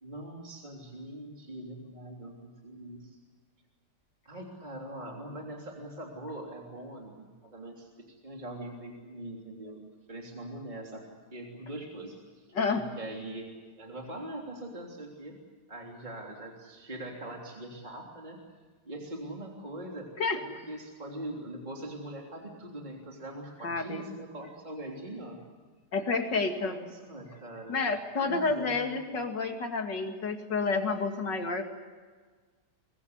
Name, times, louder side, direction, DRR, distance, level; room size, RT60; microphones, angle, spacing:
voice 1, 0.0-3.2 4.3-9.8 10.1-11.0 11.3-13.5 13.8-15.3 15.7-18.4 18.9-20.1 20.4-25.4 26.6-27.8 28.2-28.9, right 1 dB, 25° right, 0 dB, 3.4 m, -42 dB
voice 2, 12.5-12.9 20.2-20.4 23.6-24.1 25.9-26.8 27.7-31.7, left 4 dB, 90° left, 5 dB, 3.1 m, -30 dB
24.0 x 23.5 x 8.1 m, 1.5 s
omnidirectional pair, 1.8 m